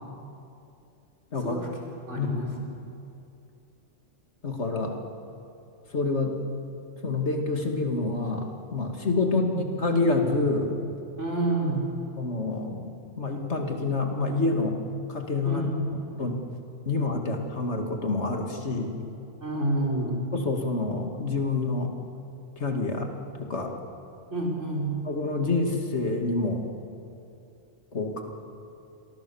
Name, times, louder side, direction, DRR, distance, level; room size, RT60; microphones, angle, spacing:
voice 1, 2.1-2.5 9.2-9.6 11.2-11.9 15.4-15.8 19.4-20.2 24.3-24.9, right 2 dB, 80° right, -2 dB, 5.2 m, -29 dB
voice 2, 4.4-5.0 5.9-6.3 7.0-10.8 12.2-14.8 15.1-15.6 16.2-16.4 16.9-19.0 20.3-21.9 22.6-23.1 23.4-23.7 25.1-26.7 27.9-28.2, left 3 dB, 70° left, 3 dB, 2.7 m, -27 dB
29.5 x 23.0 x 7.2 m, 2.6 s
omnidirectional pair, 1.2 m